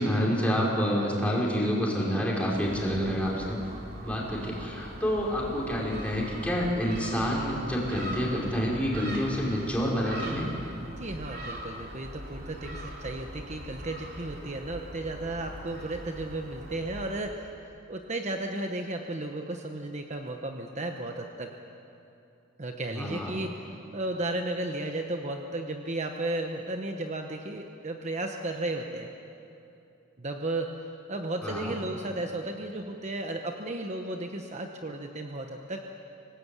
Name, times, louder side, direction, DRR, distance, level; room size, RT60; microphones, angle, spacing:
voice 1, 0.0-3.6 4.0-10.5 22.9-23.4 31.4-31.8, equal, 5° left, -4 dB, 4.9 m, -28 dB
Gull seagull, 2.5-17.1, equal, 55° right, 3.1 m, -41 dB
voice 2, 10.9-17.5 17.9-21.5 22.6-23.7 23.9-29.1 30.2-30.7 31.1-35.8, right 2 dB, 35° right, 4 dB, 1.1 m, -34 dB
26.0 x 18.5 x 8.4 m, 2.8 s
head